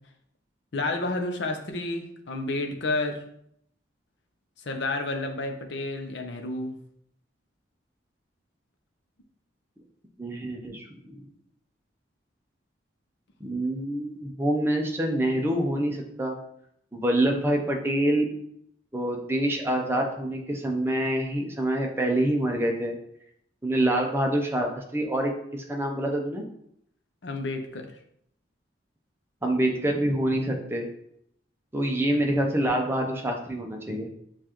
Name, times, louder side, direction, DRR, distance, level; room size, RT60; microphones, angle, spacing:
voice 1, 0.7-3.2 4.6-6.8 27.2-27.9, left 2 dB, 65° left, 4 dB, 0.6 m, -30 dB
voice 2, 10.2-11.2 13.4-16.4 16.9-18.3 18.9-23.0 23.6-26.4 29.4-30.9 31.7-34.1, right 1 dB, 10° right, 1 dB, 0.6 m, -26 dB
7.0 x 2.5 x 3.0 m, 0.71 s
head